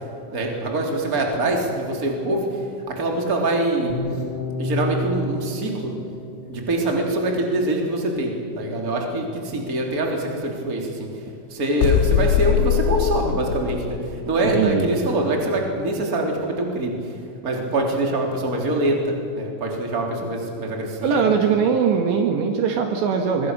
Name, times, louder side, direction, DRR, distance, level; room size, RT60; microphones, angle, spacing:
voice 1, 0.3-2.5 2.9-4.0 4.6-5.9 6.5-11.1 11.5-14.0 14.2-16.9 17.4-21.3, right 2 dB, 20° right, 1 dB, 3.3 m, -24 dB
sound 1, 3.9-8.0, left 1 dB, 25° left, 3.4 m, -31 dB
sound 2, 11.8-14.5, left 11 dB, 90° left, 3.4 m, -22 dB
voice 2, 14.5-14.9 21.0-23.5, right 6 dB, 70° right, 4 dB, 3.6 m, -21 dB
25.0 x 22.0 x 6.7 m, 2.7 s
omnidirectional pair, 5.6 m